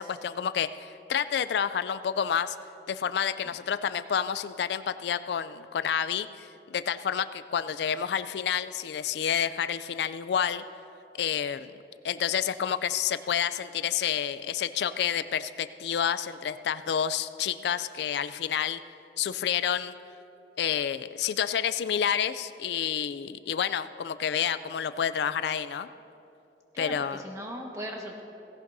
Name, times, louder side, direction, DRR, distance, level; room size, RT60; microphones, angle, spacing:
voice 1, 0.0-2.6 2.9-10.6 11.2-11.7 12.0-18.8 19.2-19.9 20.6-25.9 26.8-27.2, left 8 dB, 70° left, 13 dB, 0.3 m, -29 dB
voice 2, 26.7-28.2, equal, 20° right, 0 dB, 1.3 m, -38 dB
17.5 x 16.0 x 2.7 m, 2.8 s
head